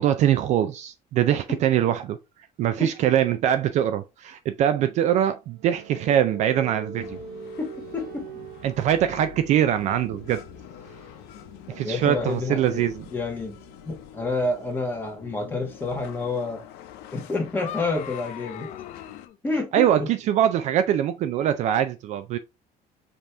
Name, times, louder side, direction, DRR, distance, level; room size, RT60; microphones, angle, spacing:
voice 1, 0.0-2.2 2.6-7.2 8.6-10.4 11.7-13.1 19.7-22.4, right 10 dB, 45° right, 0.4 m, -23 dB
sound 1, 5.4-16.3, right 4 dB, 75° right, 0.8 m, -45 dB
sound 2, 7.0-19.3, left 11 dB, 85° left, 0.7 m, -46 dB
voice 2, 7.6-8.3 11.8-12.8 13.1-13.5 13.8-16.6 17.1-18.7 19.4-20.1, left 3 dB, 10° left, 1.3 m, -29 dB
sound 3, 17.1-19.4, left 11 dB, 50° left, 0.4 m, -39 dB
5.2 x 2.9 x 3.3 m
cardioid pair, 175°, 16 cm